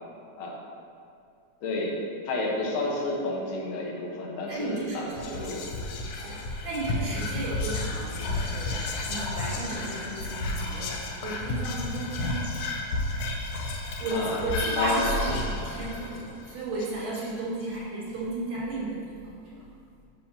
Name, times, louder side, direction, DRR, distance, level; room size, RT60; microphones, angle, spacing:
voice 1, 1.6-2.0 2.3-5.6 6.0-6.1 7.0-7.1 14.1-14.4 14.8-15.1, left 2 dB, 85° left, -3 dB, 2.8 m, -30 dB
voice 2, 4.5-5.6 6.2-12.5 13.4-13.5 14.0-19.7, right 2 dB, 80° right, -8 dB, 3.5 m, -34 dB
Whispering, 5.1-17.6, left 2 dB, 70° left, 1.7 m, -32 dB
10.0 x 6.7 x 2.8 m, 2.4 s
omnidirectional pair, 3.7 m